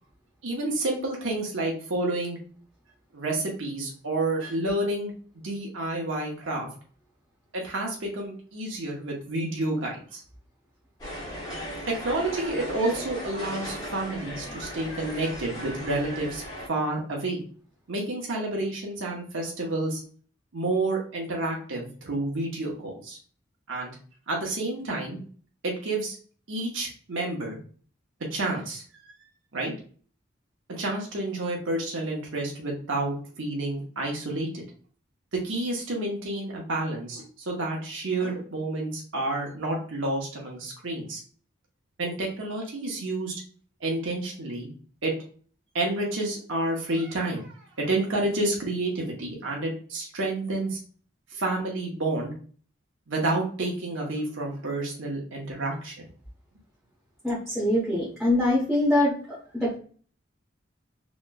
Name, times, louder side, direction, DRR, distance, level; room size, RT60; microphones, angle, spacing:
voice 1, 0.4-2.4 3.1-6.7 7.5-10.2 11.9-16.4 16.7-17.4 17.9-20.0 20.5-23.2 23.7-23.9 24.3-25.2 25.6-26.1 26.5-27.6 28.3-29.0 29.5-29.7 30.7-34.6 35.3-41.2 42.0-43.4 43.8-44.7 45.0-45.1 45.7-50.8 51.3-52.3 53.1-56.0, right 2 dB, 75° right, -1 dB, 0.8 m, -29 dB
sound 1, 11.0-16.7, equal, 20° left, 1.0 m, -37 dB
voice 2, 57.2-59.8, left 1 dB, ahead, -8 dB, 0.8 m, -24 dB
3.0 x 2.9 x 2.2 m, 0.43 s
head